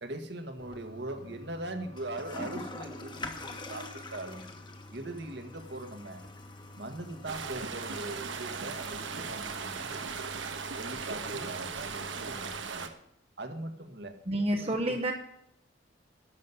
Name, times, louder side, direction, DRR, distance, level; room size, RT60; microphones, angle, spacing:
voice 1, 0.0-4.4 4.9-6.3 6.8-10.4 10.8-13.0 13.4-14.2 14.6-15.0, right 1 dB, 60° right, 6 dB, 1.7 m, -41 dB
Toilet flush, 0.6-12.6, left 2 dB, 25° left, 1.3 m, -46 dB
sound 1, 7.3-12.9, right 5 dB, 75° right, 1.3 m, -38 dB
voice 2, 14.3-15.1, right 1 dB, 30° right, 2 dB, 1.0 m, -29 dB
11.5 x 7.5 x 9.6 m, 0.76 s
head